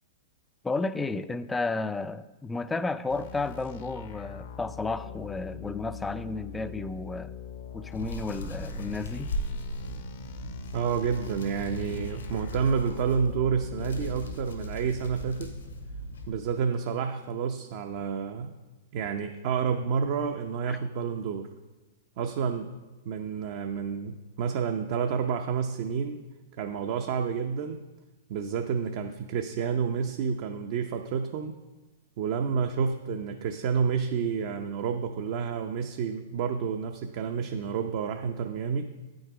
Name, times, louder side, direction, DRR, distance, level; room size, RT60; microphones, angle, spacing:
voice 1, 0.6-7.3 7.7-9.3 20.7-20.8, left 3 dB, 10° left, 0.4 m, -32 dB
sound 1, 3.1-14.4, left 7 dB, 60° left, 0.7 m, -42 dB
Hands, 7.9-16.3, equal, 90° left, 1.8 m, -37 dB
voice 2, 10.7-15.5 16.3-18.5 18.9-21.5 22.2-22.7 23.1-26.2 26.6-27.8 28.3-31.6 32.2-38.8, right 6 dB, 55° right, 0.6 m, -29 dB
8.7 x 6.4 x 4.8 m
hypercardioid pair, 120°, 0 cm